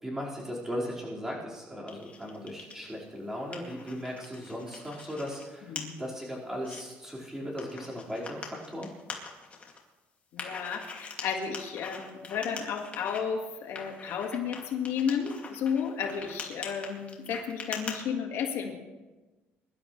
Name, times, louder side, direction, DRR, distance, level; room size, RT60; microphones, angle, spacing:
voice 1, 0.0-5.7 6.0-8.9, equal, 10° right, -5 dB, 4.8 m, -37 dB
sound 1, 1.9-2.8 3.2-5.4 5.8-5.9 6.3-6.8 7.6-9.8 10.4-13.2 13.8-18.0, left 4 dB, 30° left, 2.5 m, -42 dB
voice 2, 5.6-6.0 10.3-18.8, left 7 dB, 70° left, 3 dB, 1.9 m, -33 dB
22.5 x 12.0 x 3.3 m, 1.2 s
cardioid pair, 120°, 4 cm